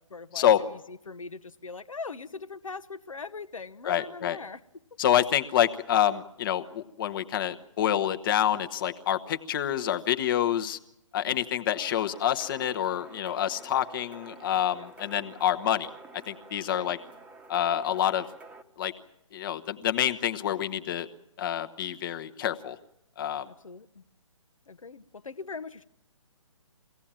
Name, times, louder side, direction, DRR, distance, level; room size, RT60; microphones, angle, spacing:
voice 1, 0.1-4.6 11.2-11.4 14.8-14.9 16.7-16.9 23.5-24.0 24.7-25.8, left 4 dB, 80° left, 9 dB, 1.1 m, -41 dB
voice 2, 3.9-4.4 5.0-10.8 11.1-15.9 16.3-17.0 17.5-18.3 18.8-18.9 19.3-21.1 21.4-22.8 23.2-23.4, left 10 dB, 40° left, 9 dB, 1.2 m, -27 dB
sound 1, 11.8-18.6, right 3 dB, 10° right, 1.0 m, -49 dB
23.5 x 17.0 x 8.9 m, 0.79 s
figure-of-eight pair, 140°, 17 cm